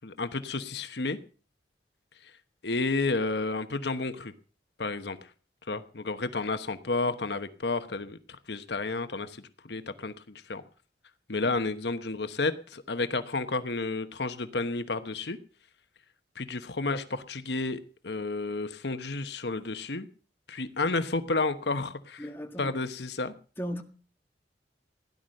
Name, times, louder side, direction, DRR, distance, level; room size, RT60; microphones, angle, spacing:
voice 1, 0.0-1.2 2.6-4.3 4.8-5.3 5.7-8.2 8.5-10.6 11.3-15.4 16.4-20.1 20.5-22.3 22.6-23.3, left 3 dB, 70° left, 1.1 m, -31 dB
voice 2, 22.2-22.7 23.6-23.8, equal, 15° left, 1.8 m, -36 dB
17.0 x 10.5 x 6.5 m
head